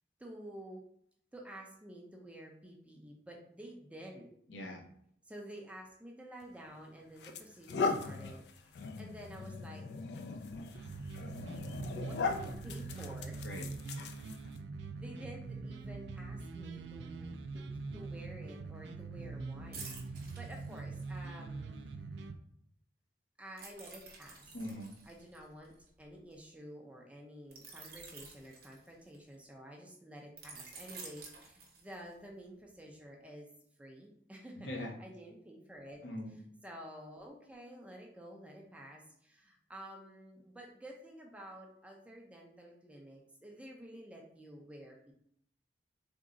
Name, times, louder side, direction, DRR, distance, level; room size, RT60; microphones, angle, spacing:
voice 1, 0.2-0.8 1.3-4.3 5.2-9.8 12.0-13.4 15.0-21.8 23.4-24.5 25.1-33.5 33.8-36.0 36.6-45.1, right 1 dB, 5° right, -1 dB, 0.4 m, -51 dB
voice 2, 4.5-4.9 13.4-13.7 24.5-24.9 34.6-35.0 36.0-36.4, left 1 dB, 85° left, 1 dB, 0.7 m, -41 dB
sound 1, 6.4-6.6 7.2-14.6, left 4 dB, 70° left, 0.3 m, -39 dB
sound 2, 10.7-22.4, right 3 dB, 75° right, 0.3 m, -43 dB
sound 3, 19.7-21.3 23.6-26.3 27.5-29.3 30.4-32.2 32.6-32.8, right 4 dB, 50° right, 0.8 m, -51 dB
3.5 x 2.0 x 3.7 m, 0.67 s
head